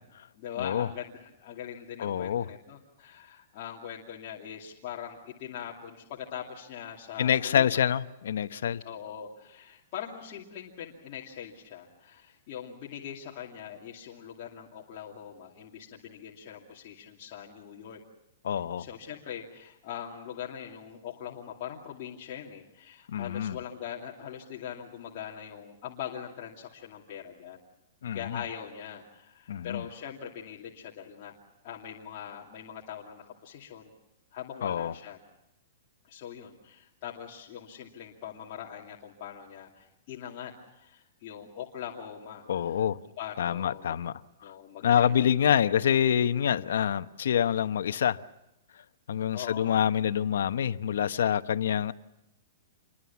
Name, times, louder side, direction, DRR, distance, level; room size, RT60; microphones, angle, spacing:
voice 1, 0.3-7.9 8.8-18.0 18.8-27.6 28.1-31.3 31.6-33.9 34.3-35.2 36.0-42.8 43.2-43.9 44.4-46.0 49.3-49.8, left 9 dB, 35° left, 2.6 m, -42 dB
voice 2, 2.0-2.5 7.2-8.8 18.4-18.9 23.1-23.6 28.0-28.4 29.5-29.8 34.6-34.9 42.5-43.0 43.4-44.1 44.8-48.2 49.1-51.9, left 9 dB, 70° left, 1.0 m, -26 dB
27.5 x 22.5 x 7.2 m
hypercardioid pair, 175°, 0 cm